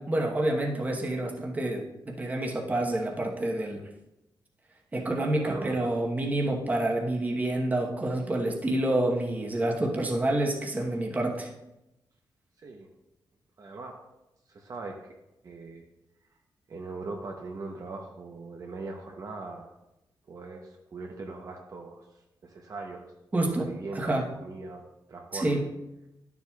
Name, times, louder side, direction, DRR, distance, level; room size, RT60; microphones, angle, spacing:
voice 1, 0.0-3.8 4.9-11.5 23.3-23.7 23.9-24.3 25.3-25.7, right 1 dB, 20° right, -1 dB, 1.0 m, -28 dB
voice 2, 5.4-5.9 12.6-12.9 13.6-13.9 14.5-15.0 15.4-15.8 16.7-19.7 20.3-22.0 22.4-23.1 23.4-24.8 25.1-25.7, right 3 dB, 45° right, 1 dB, 0.7 m, -40 dB
11.5 x 7.0 x 2.3 m, 0.92 s
wide cardioid pair, 165°, 8 cm